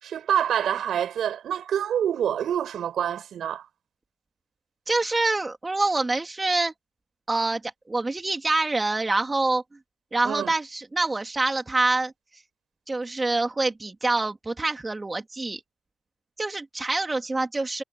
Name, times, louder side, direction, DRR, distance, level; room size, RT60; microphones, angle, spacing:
voice 1, 0.0-3.7 10.2-10.5, right 9 dB, 75° right, 7.6 m, -26 dB
voice 2, 4.9-6.7 7.3-9.6 10.1-12.1 12.9-15.6 16.4-17.8, right 2 dB, 25° right, 3.1 m, -26 dB
cardioid pair, 80°, 0 cm